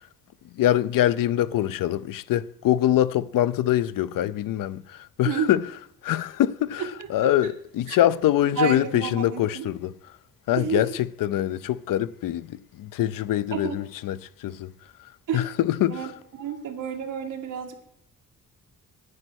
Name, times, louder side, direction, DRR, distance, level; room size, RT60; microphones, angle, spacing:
voice 1, 0.6-5.6 6.0-9.9 10.5-14.7 15.3-16.1, left 12 dB, 90° left, 0.6 m, -24 dB
voice 2, 5.2-5.6 7.9-8.0 8.6-9.7 10.5-10.9 13.5-13.8 15.3-15.4 15.9-16.1 16.4-17.8, right 7 dB, 70° right, 1.9 m, -30 dB
9.8 x 9.7 x 6.3 m
wide cardioid pair, 180°, 32 cm